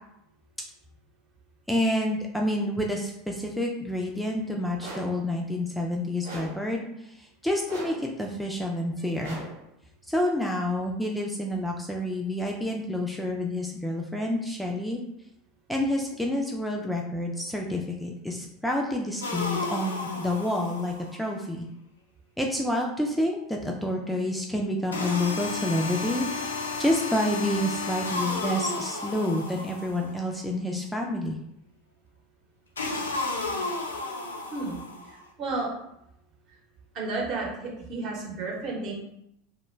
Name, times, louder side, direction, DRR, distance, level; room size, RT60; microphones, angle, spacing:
voice 1, 1.7-9.4 10.1-15.0 15.7-21.7 22.4-31.4, left 1 dB, ahead, 0 dB, 0.3 m, -29 dB
sound 1, 4.8-5.2 6.2-6.7 7.7-8.1 9.2-9.7, right 2 dB, 85° right, 0.9 m, -40 dB
sound 2, 19.2-21.2 24.9-30.2 32.8-35.2, left 3 dB, 85° left, 0.4 m, -32 dB
voice 2, 35.4-35.7 36.9-38.9, right 3 dB, 50° right, -2 dB, 0.9 m, -31 dB
2.1 x 2.1 x 3.1 m, 0.79 s
hypercardioid pair, 80°, 0 cm